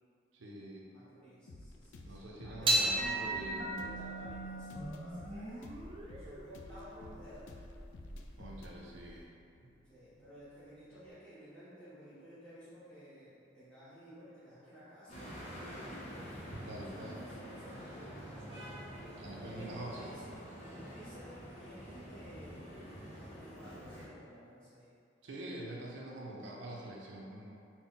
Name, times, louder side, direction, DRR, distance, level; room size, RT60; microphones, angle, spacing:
voice 1, 0.3-0.9 2.0-3.7 8.4-9.3 16.6-17.2 19.2-20.1 25.2-27.6, right 1 dB, 85° right, -3 dB, 0.5 m, -45 dB
voice 2, 0.8-5.7 6.2-7.6 9.9-16.0 16.7-18.7 19.4-20.3 20.6-24.9, equal, 5° left, -14 dB, 1.2 m, -54 dB
sound 1, 1.5-11.1, left 1 dB, 80° left, 0.3 m, -53 dB
sound 2, 2.6-9.2, right 1 dB, 25° right, 0.3 m, -36 dB
sound 3, 15.1-24.1, equal, 35° left, 0.7 m, -47 dB
3.9 x 2.2 x 3.9 m, 2.4 s
head